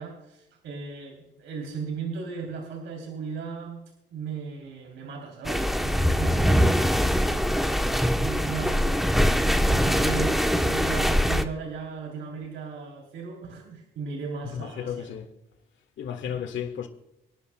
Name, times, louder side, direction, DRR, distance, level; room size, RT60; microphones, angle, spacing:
voice 1, 0.0-3.8 4.1-6.9 7.2-15.1 16.2-16.5, right 5 dB, 80° right, 3.2 m, -37 dB
sound 1, 5.4-11.4, equal, ahead, 0.9 m, -23 dB
voice 2, 14.5-15.3 16.0-16.9, left 8 dB, 70° left, 1.8 m, -33 dB
26.0 x 11.0 x 2.2 m
cardioid pair, 90°, 20 cm